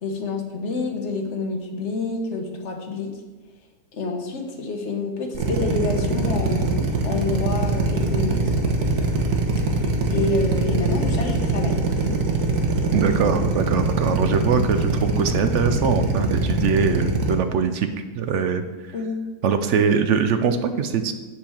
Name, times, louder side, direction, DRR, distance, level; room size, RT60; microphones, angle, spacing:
voice 1, 0.0-3.1 3.9-6.7 7.0-8.4 9.8-12.2 18.9-19.2, left 3 dB, 50° left, 4 dB, 1.3 m, -28 dB
Drill, 5.3-17.3, right 3 dB, 85° right, 1.6 m, -23 dB
voice 2, 12.9-17.9 18.1-18.6 19.4-21.1, right 6 dB, 60° right, 9 dB, 0.8 m, -22 dB
7.4 x 4.7 x 7.0 m, 1.2 s
omnidirectional pair, 1.6 m